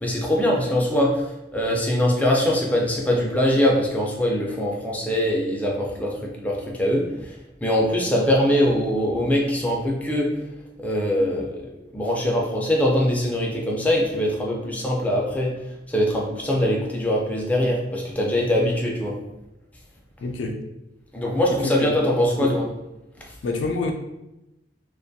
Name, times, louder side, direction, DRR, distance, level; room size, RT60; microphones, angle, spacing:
voice 1, 0.0-10.4 10.8-19.2 21.1-22.7 23.2-23.3, equal, 10° left, 0.4 m, -22 dB
voice 2, 20.2-20.6 21.6-21.9 22.4-22.5 23.4-23.9, left 3 dB, 85° left, 0.4 m, -27 dB
2.5 x 2.2 x 2.6 m
head